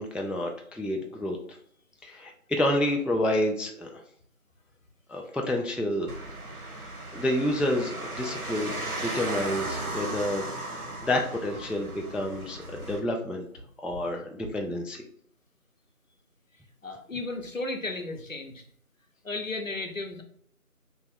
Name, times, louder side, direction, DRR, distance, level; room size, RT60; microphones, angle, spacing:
voice 1, 0.0-1.4 2.0-4.0 5.1-6.1 7.1-10.4 10.7-13.5 13.8-15.0, left 1 dB, 5° right, 1 dB, 0.3 m, -29 dB
sound 1, 6.1-13.0, right 2 dB, 80° right, 1.0 m, -36 dB
voice 2, 16.8-18.6 19.2-20.2, left 2 dB, 65° left, 4 dB, 0.7 m, -34 dB
2.9 x 2.1 x 3.4 m, 0.63 s
figure-of-eight pair, 180°, 44 cm